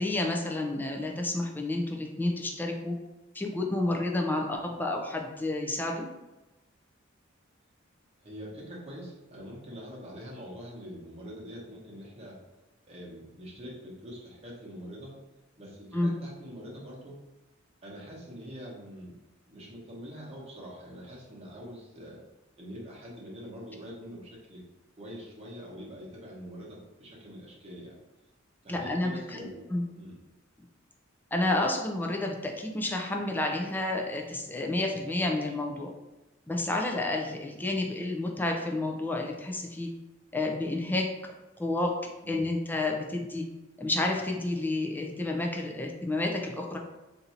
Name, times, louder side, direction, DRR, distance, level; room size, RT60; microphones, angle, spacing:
voice 1, 0.0-2.9 3.3-6.0 15.9-16.1 28.7-29.8 31.3-35.9 36.5-39.9 40.3-41.1 41.6-41.9 42.3-43.5 43.8-46.8, left 2 dB, 10° left, 1 dB, 0.4 m, -30 dB
voice 2, 8.2-12.4 12.9-15.2 15.6-17.2 17.8-19.1 19.5-22.2 22.6-24.6 24.9-28.0 28.6-30.2 42.2-42.4, equal, 30° right, -4 dB, 1.0 m, -44 dB
2.7 x 2.6 x 4.3 m, 1.0 s
head